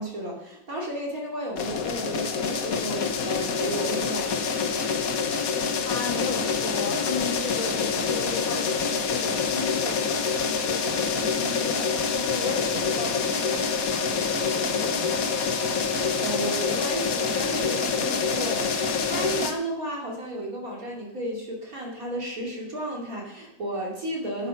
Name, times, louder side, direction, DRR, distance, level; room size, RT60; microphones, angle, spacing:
voice 1, 0.0-4.3 15.8-24.5, right 1 dB, 45° right, -3 dB, 3.0 m, -33 dB
sound 1, 1.6-19.5, left 5 dB, 55° left, 1.4 m, -26 dB
voice 2, 5.8-15.4, left 4 dB, 80° left, 1 dB, 3.0 m, -35 dB
Wind instrument woodwind instrument, 11.9-16.0, equal, 30° left, 3.3 m, -48 dB
11.5 x 9.0 x 5.6 m, 0.83 s
omnidirectional pair, 2.1 m